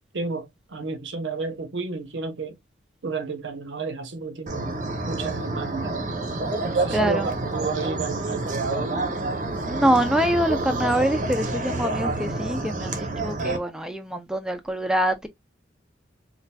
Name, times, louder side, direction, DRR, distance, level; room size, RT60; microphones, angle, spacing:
voice 1, 0.1-2.5 3.0-4.7 5.0-5.9 6.6-9.2, right 4 dB, 80° right, 0.8 m, -32 dB
sound 1, 4.5-13.6, right 2 dB, 40° right, 0.7 m, -28 dB
voice 2, 6.9-7.3 9.6-15.3, right 1 dB, 5° right, 0.5 m, -25 dB
4.3 x 2.5 x 2.2 m
head